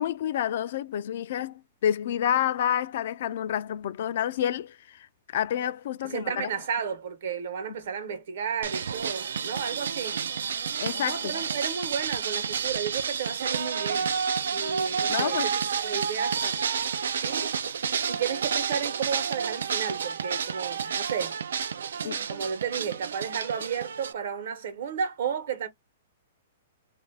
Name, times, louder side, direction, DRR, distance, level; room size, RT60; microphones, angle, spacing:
voice 1, 0.0-5.1 5.3-6.5 10.8-11.3 15.1-15.5 20.8-21.0 22.0-22.3, left 10 dB, 60° left, 0.3 m, -29 dB
voice 2, 6.0-10.2 11.1-14.1 14.5-17.5 18.1-21.4 22.3-25.7, right 7 dB, 65° right, 0.9 m, -33 dB
sound 1, 8.6-24.1, right 7 dB, 90° right, 0.3 m, -30 dB
2.4 x 2.3 x 3.2 m
hypercardioid pair, 150°, 0 cm